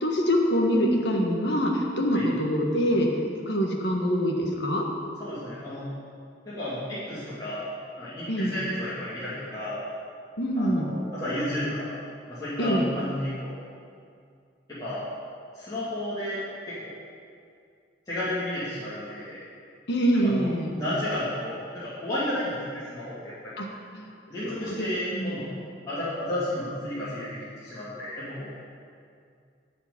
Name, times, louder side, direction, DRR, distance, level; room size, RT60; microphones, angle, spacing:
voice 1, 0.0-3.1 3.5-4.9 8.3-8.6 10.4-10.9 12.6-12.9 19.9-20.7 23.6-23.7 23.9-24.0 24.4-25.4, equal, 60° left, 0 dB, 1.5 m, -25 dB
voice 2, 5.2-5.9 6.5-7.6 8.0-9.8 10.6-11.9 12.3-13.5 14.7-15.0 15.5-16.4 16.7-16.9 18.1-19.4 20.1-23.5 24.3-25.5 25.9-28.6, left 1 dB, 20° left, -13 dB, 2.6 m, -32 dB
12.0 x 5.1 x 8.4 m, 2.3 s
head